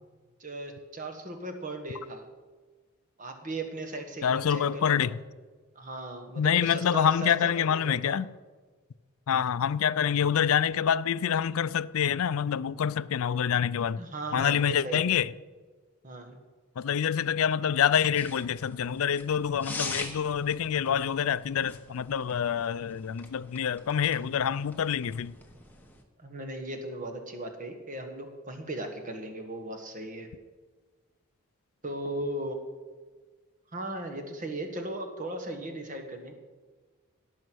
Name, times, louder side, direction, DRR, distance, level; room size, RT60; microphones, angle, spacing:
voice 1, 0.4-2.3 3.2-5.1 5.7-8.2 13.9-15.0 16.0-16.4 26.2-30.3 31.8-32.6 33.7-36.3, right 2 dB, 35° right, 1.6 m, -37 dB
voice 2, 4.2-5.2 6.4-8.3 9.3-14.0 14.3-15.3 16.8-25.3, left 8 dB, 75° left, 0.4 m, -26 dB
sound 1, 18.2-26.0, left 3 dB, 10° left, 1.2 m, -43 dB
17.5 x 6.4 x 6.2 m
head